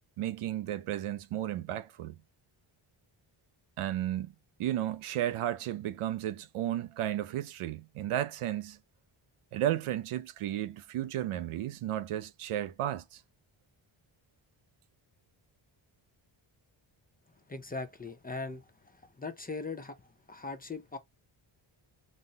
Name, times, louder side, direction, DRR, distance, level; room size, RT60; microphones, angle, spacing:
voice 1, 0.2-2.1 3.8-4.3 4.6-8.8 9.5-13.2, right 12 dB, 85° right, 0.6 m, -33 dB
voice 2, 17.5-21.0, left 3 dB, 20° left, 0.5 m, -40 dB
4.2 x 2.0 x 3.9 m
wide cardioid pair, 115°, 49 cm